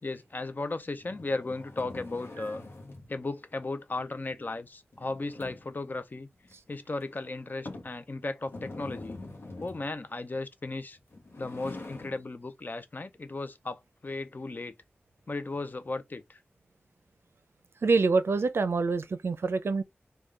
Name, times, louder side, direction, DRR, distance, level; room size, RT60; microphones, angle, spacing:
voice 1, 0.0-2.6 3.1-6.3 6.7-9.2 9.6-11.0 11.4-14.7 15.3-16.4, left 2 dB, 45° left, 0.5 m, -35 dB
sound 1, 1.0-3.1 4.9-5.8 6.4-6.5 7.0-7.1 7.7-8.0 8.4-9.9 11.0-12.2, left 2 dB, 85° left, 0.8 m, -44 dB
voice 2, 17.8-19.8, right 4 dB, 75° right, 0.4 m, -26 dB
3.6 x 2.2 x 3.2 m
wide cardioid pair, 65°, 4 cm